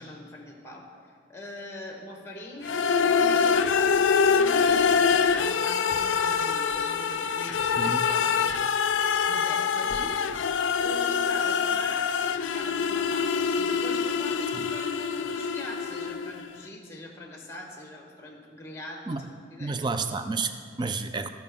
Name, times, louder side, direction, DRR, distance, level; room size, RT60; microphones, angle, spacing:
voice 1, 0.0-10.3 10.8-19.8, left 1 dB, 15° left, 0 dB, 1.2 m, -42 dB
sound 1, 2.6-16.5, left 6 dB, 70° left, 0.4 m, -25 dB
sound 2, 3.4-4.3 4.7-8.9 9.1-9.6 9.9-10.4, equal, 5° right, 0.8 m, -50 dB
voice 2, 7.8-8.1 14.6-14.7 19.1-19.2 19.6-21.3, right 4 dB, 20° right, 9 dB, 0.3 m, -30 dB
15.0 x 5.7 x 3.6 m, 2.2 s
head